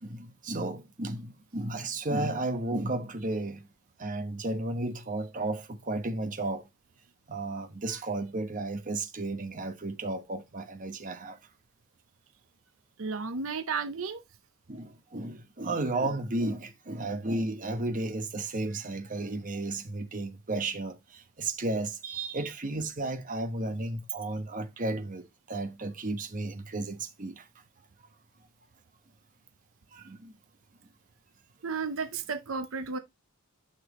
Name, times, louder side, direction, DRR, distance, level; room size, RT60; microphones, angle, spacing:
voice 1, 0.0-3.7 4.0-6.7 7.3-11.4 14.7-27.4 29.9-30.3, right 2 dB, 40° right, 1.2 m, -33 dB
voice 2, 13.0-14.2 31.6-33.0, right 5 dB, 80° right, 0.8 m, -33 dB
9.7 x 5.9 x 3.0 m
head